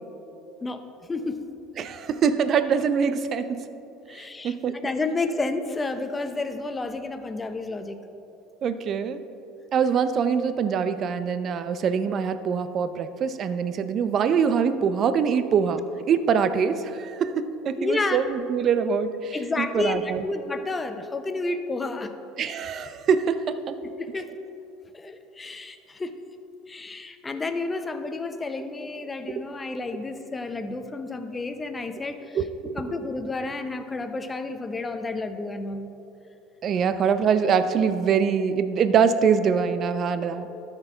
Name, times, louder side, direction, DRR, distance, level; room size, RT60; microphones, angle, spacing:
voice 1, 1.1-1.5 4.1-8.0 17.8-18.2 19.3-22.1 23.8-24.5 24.9-26.1 26.7-32.4 32.6-35.9, left 3 dB, 20° left, 8 dB, 0.6 m, -31 dB
voice 2, 1.8-3.7 4.1-4.8 8.6-9.2 9.7-20.2 22.4-23.8 32.3-32.9 36.6-40.5, right 6 dB, 45° right, 12 dB, 0.5 m, -24 dB
13.0 x 4.5 x 4.5 m, 2.9 s
supercardioid pair, 90°, 0 cm